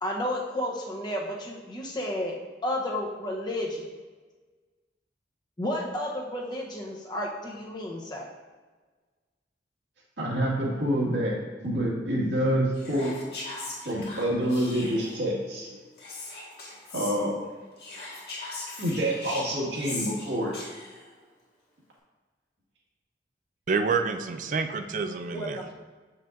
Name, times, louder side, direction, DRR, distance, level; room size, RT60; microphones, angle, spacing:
voice 1, 0.0-2.4 2.6-3.9 5.6-8.3 25.3-25.7, left 1 dB, 25° left, -2 dB, 0.8 m, -32 dB
voice 2, 10.2-11.4 11.6-13.1 13.9-15.8 16.9-17.4 18.8-20.5, equal, 85° right, -5 dB, 1.9 m, -27 dB
Whispering, 12.7-15.3 16.0-17.2 17.8-21.1, left 2 dB, 60° left, 1.7 m, -39 dB
voice 3, 23.7-25.6, right 5 dB, 45° right, 8 dB, 0.4 m, -28 dB
7.1 x 5.6 x 2.6 m, 1.4 s
head